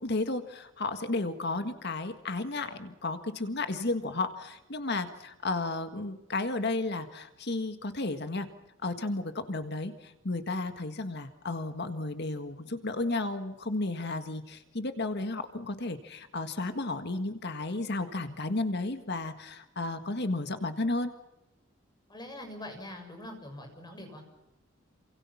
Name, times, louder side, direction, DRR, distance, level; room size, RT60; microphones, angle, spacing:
voice 1, 0.0-8.5 8.8-21.1, left 2 dB, 60° left, 8 dB, 1.8 m, -33 dB
voice 2, 22.1-24.2, left 1 dB, 20° left, 5 dB, 6.8 m, -43 dB
28.5 x 26.5 x 5.9 m, 0.97 s
head